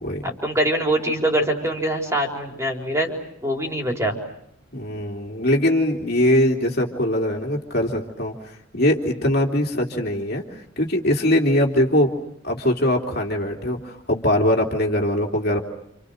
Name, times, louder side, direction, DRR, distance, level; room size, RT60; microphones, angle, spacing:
voice 1, 0.2-3.1 3.4-4.2, right 1 dB, 15° right, 1 dB, 4.4 m, -23 dB
voice 2, 4.7-12.1 12.4-15.6, left 1 dB, 50° left, 1 dB, 3.2 m, -22 dB
29.0 x 28.5 x 6.6 m, 0.73 s
head